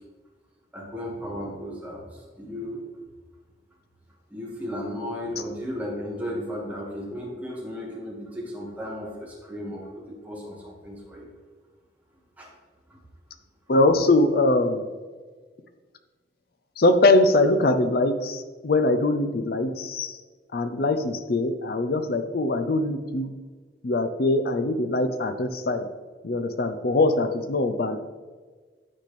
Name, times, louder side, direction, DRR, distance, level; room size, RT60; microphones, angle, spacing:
voice 1, 0.7-2.8 4.3-11.3 12.4-12.5 12.9-13.0, equal, 10° right, -4 dB, 1.7 m, -35 dB
voice 2, 13.7-14.9 16.8-20.2 20.5-23.3 23.8-25.9 26.2-28.0, left 2 dB, 60° left, 8 dB, 0.6 m, -22 dB
9.5 x 4.3 x 3.3 m, 1.4 s
head